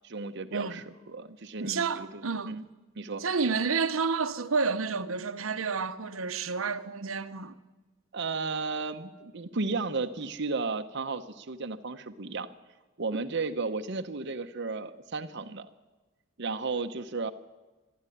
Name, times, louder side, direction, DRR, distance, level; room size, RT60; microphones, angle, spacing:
voice 1, 0.0-2.6 3.0-3.2 8.1-12.5 13.0-15.7 16.4-17.3, right 4 dB, 60° right, 0.8 m, -34 dB
voice 2, 0.5-0.8 1.6-2.6 3.2-7.6, right 5 dB, 90° right, 1.0 m, -30 dB
24.5 x 11.0 x 9.9 m
head